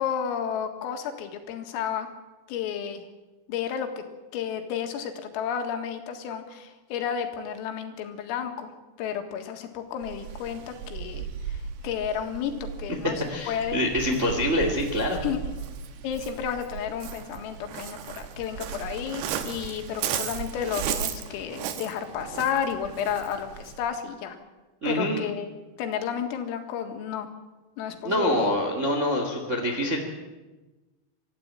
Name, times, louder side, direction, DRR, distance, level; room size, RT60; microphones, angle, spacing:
voice 1, 0.0-2.1 2.5-3.0 3.5-4.0 4.3-8.7 9.0-11.6 11.8-12.5 12.8-13.8 15.2-15.4 16.0-24.4 24.9-25.5 25.8-27.3 27.8-28.5, left 8 dB, 85° left, 5 dB, 4.4 m, -32 dB
Waves surf, 10.0-23.9, right 8 dB, 70° right, 2.6 m, -36 dB
voice 2, 13.3-15.2 24.8-25.3 28.0-30.1, left 1 dB, 35° right, 3 dB, 1.1 m, -25 dB
24.5 x 14.0 x 8.9 m, 1.2 s
omnidirectional pair, 6.0 m